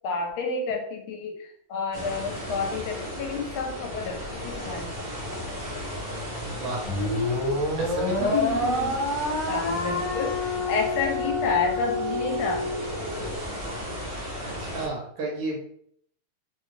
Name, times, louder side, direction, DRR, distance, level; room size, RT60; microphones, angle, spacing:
voice 1, 0.0-4.9 8.2-9.0 9.5-12.7, left 4 dB, 75° left, 3 dB, 1.4 m, -30 dB
sound 1, 1.9-14.9, equal, 50° right, 0.5 m, -35 dB
voice 2, 6.5-6.9 7.8-8.3 14.4-15.6, right 2 dB, 70° right, 0 dB, 1.5 m, -33 dB
sound 2, 6.8-13.4, left 2 dB, 50° left, 0.4 m, -28 dB
3.7 x 2.3 x 3.1 m, 0.67 s
omnidirectional pair, 2.4 m